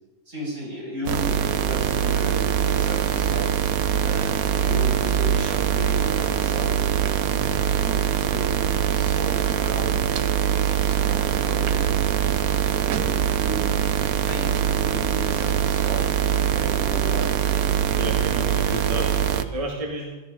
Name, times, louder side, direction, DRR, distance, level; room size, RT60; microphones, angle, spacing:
voice 1, 0.3-3.6 4.0-7.4 7.7-12.2 12.8-16.1 16.4-18.7, right 1 dB, 55° right, -5 dB, 7.0 m, -35 dB
sound 1, 1.1-19.4, right 9 dB, 75° right, 1.2 m, -23 dB
voice 2, 7.3-7.7 17.9-20.2, right 2 dB, 25° right, 0 dB, 1.8 m, -32 dB
17.0 x 13.5 x 5.0 m, 1.1 s
omnidirectional pair, 1.6 m